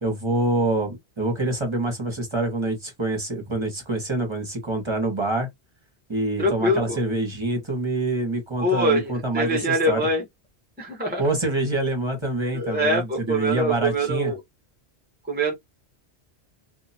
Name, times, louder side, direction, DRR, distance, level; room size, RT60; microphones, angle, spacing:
voice 1, 0.0-5.5 6.1-10.0 11.2-14.3, right 2 dB, 25° right, 1.3 m, -26 dB
voice 2, 6.4-7.0 8.6-10.2 10.8-11.2 12.5-14.4 15.3-15.5, right 1 dB, 10° right, 0.9 m, -24 dB
2.8 x 2.3 x 4.1 m
omnidirectional pair, 1.1 m